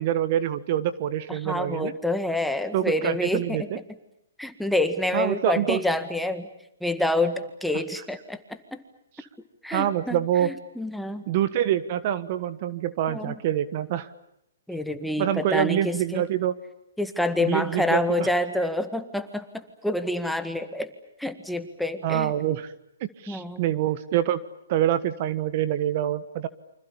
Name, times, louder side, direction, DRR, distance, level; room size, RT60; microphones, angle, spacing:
voice 1, 0.0-1.9 2.7-3.8 5.1-5.8 9.2-9.3 9.7-10.5 11.3-14.1 15.2-16.5 17.4-18.3 22.0-22.7 23.2-24.4 24.7-26.5, right 11 dB, 45° right, 13 dB, 1.4 m, -26 dB
voice 2, 1.3-3.8 4.4-6.5 6.8-8.8 9.6-11.2 13.1-13.4 14.7-16.3 17.0-20.9 21.2-22.3 23.3-23.7, left 1 dB, ahead, 8 dB, 1.9 m, -28 dB
28.5 x 26.0 x 7.2 m, 0.79 s
hypercardioid pair, 135°, 0 cm